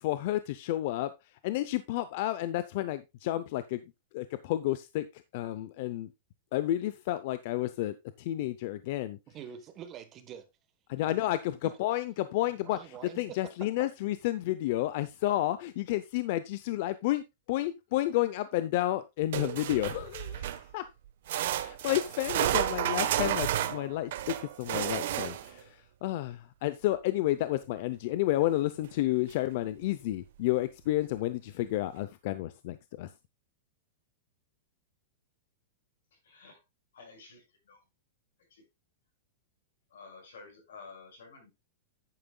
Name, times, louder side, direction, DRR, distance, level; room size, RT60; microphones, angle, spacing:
voice 1, 0.0-3.8 4.1-6.1 6.5-9.2 10.9-20.9 21.6-33.1, left 15 dB, 40° left, 0.6 m, -31 dB
voice 2, 9.3-10.5 11.0-11.2 11.6-11.8 12.6-13.4, right 9 dB, 20° right, 1.2 m, -45 dB
sound 1, 19.3-20.7 21.3-25.6 28.8-28.9 29.3-29.4 30.1-30.2, right 12 dB, 55° right, 1.1 m, -31 dB
voice 3, 36.1-36.6 36.9-37.8 38.4-38.7 39.9-41.5, left 4 dB, 85° left, 6.1 m, -51 dB
10.5 x 9.0 x 2.3 m
supercardioid pair, 175°, 0 cm